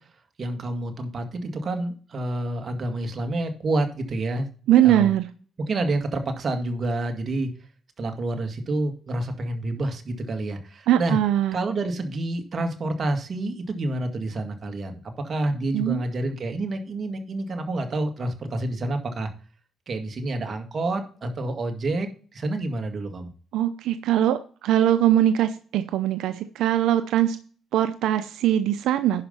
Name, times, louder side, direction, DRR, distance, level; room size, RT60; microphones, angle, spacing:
voice 1, 0.4-4.5 4.8-5.1 5.6-7.5 8.0-11.2 11.5-19.3 19.9-23.3, right 2 dB, 45° right, 5 dB, 2.0 m, -28 dB
voice 2, 4.7-5.3 10.9-11.6 15.7-16.0 23.5-27.4 27.7-29.2, right 12 dB, 85° right, 10 dB, 0.6 m, -21 dB
11.0 x 5.3 x 5.6 m, 0.41 s
cardioid pair, 90°, 0 cm